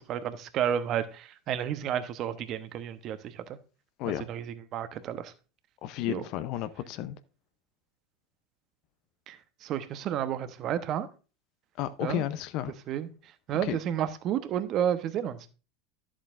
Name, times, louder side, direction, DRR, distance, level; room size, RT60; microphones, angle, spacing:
voice 1, 0.0-3.2 4.3-5.3 6.1-6.2 9.3-9.4 9.6-11.1 12.0-12.2 12.9-13.1 13.5-15.5, right 10 dB, 50° right, 0.9 m, -31 dB
voice 2, 5.8-7.2 11.8-12.7 13.5-13.8, left 12 dB, 55° left, 0.6 m, -32 dB
11.0 x 7.4 x 2.5 m
hypercardioid pair, 85°, 0 cm